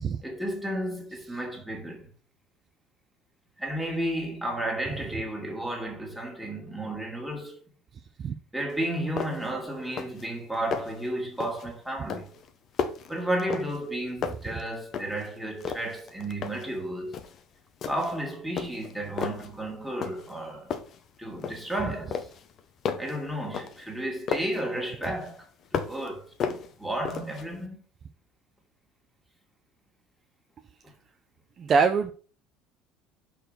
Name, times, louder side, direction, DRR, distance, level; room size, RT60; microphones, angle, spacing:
voice 1, 0.2-2.1 3.6-7.6 8.5-12.3 13.1-17.1 17.9-20.7 21.2-22.3 23.0-25.5 25.7-27.8 30.8-30.9, right 1 dB, ahead, 2.3 m, -33 dB
sound 1, 8.7-8.8 9.2-9.6 9.8-10.3 10.5-11.0 11.4-11.7 12.1-13.9 14.2-15.3 15.6-16.7 17.1-17.4 17.8-18.2 18.6-19.5 20.0-20.4 20.7-21.8 22.1-24.6 25.0-26.1 26.4-27.5, left 7 dB, 45° left, 1.0 m, -34 dB
voice 2, 31.6-32.1, right 5 dB, 35° right, 0.7 m, -23 dB
6.0 x 4.7 x 6.7 m
cardioid pair, 140°, 0 cm